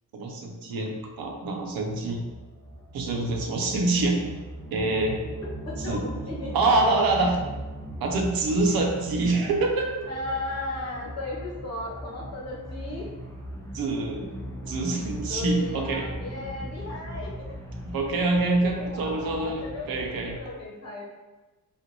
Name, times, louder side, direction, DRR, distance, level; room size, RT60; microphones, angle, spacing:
voice 1, 0.1-2.2 2.9-4.2 4.7-5.2 5.8-6.0 6.5-7.4 8.0-9.9 13.7-14.2 14.7-16.0 17.9-19.6 19.9-20.4, right 2 dB, 85° right, 1 dB, 0.8 m, -25 dB
sound 1, 1.2-20.4, equal, 10° left, 0.4 m, -39 dB
voice 2, 5.6-6.8 10.1-13.1 15.3-17.6 18.8-21.0, left 2 dB, 45° left, -4 dB, 1.1 m, -35 dB
5.1 x 2.5 x 3.0 m, 1.2 s
wide cardioid pair, 160°, 35 cm